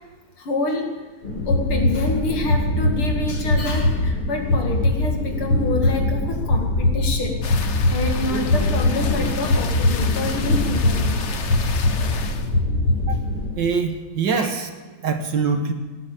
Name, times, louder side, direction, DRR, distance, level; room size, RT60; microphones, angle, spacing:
voice 1, 0.4-1.0 1.5-7.4 7.9-11.3 14.4-14.5, left 2 dB, 75° left, 2 dB, 3.0 m, -27 dB
sound 1, 1.2-13.5, left 2 dB, 90° left, 5.4 m, -22 dB
sound 2, 7.4-12.5, left 6 dB, 50° left, 0.8 m, -33 dB
voice 2, 13.6-14.7 15.0-15.7, right 5 dB, 60° right, 6 dB, 1.8 m, -23 dB
18.5 x 10.0 x 7.3 m, 1.3 s
omnidirectional pair, 2.4 m